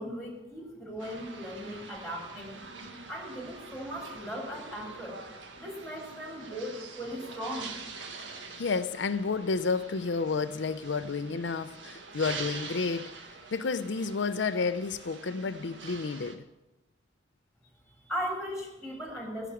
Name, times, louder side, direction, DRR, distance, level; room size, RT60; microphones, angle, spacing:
voice 1, 0.0-2.6 3.1-5.2 5.6-7.7 18.0-19.5, equal, ahead, 2.9 m, -38 dB
sound 1, 1.0-16.4, right 4 dB, 90° right, 1.7 m, -45 dB
voice 2, 8.4-13.1 13.5-16.5, left 4 dB, 75° left, 0.5 m, -31 dB
17.0 x 6.1 x 9.2 m
head